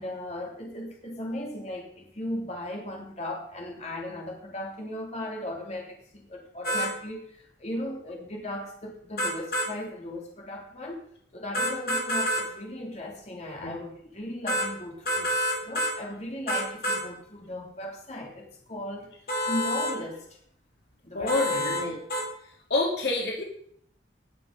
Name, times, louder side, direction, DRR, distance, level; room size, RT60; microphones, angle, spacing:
voice 1, 0.0-11.1 11.3-15.3 15.6-19.1 19.4-20.4 21.0-21.7, left 1 dB, 40° left, -1 dB, 3.3 m, -37 dB
sound 1, 6.6-6.9 9.2-9.7 11.5-12.5 14.5-14.7 15.1-16.0 16.5-17.0 19.3-19.9 21.3-21.8 22.1-22.3, equal, 55° left, 2.9 m, -27 dB
voice 2, 21.1-22.0 22.4-23.4, left 3 dB, 75° left, 0 dB, 2.3 m, -28 dB
19.0 x 6.8 x 5.4 m, 0.66 s
head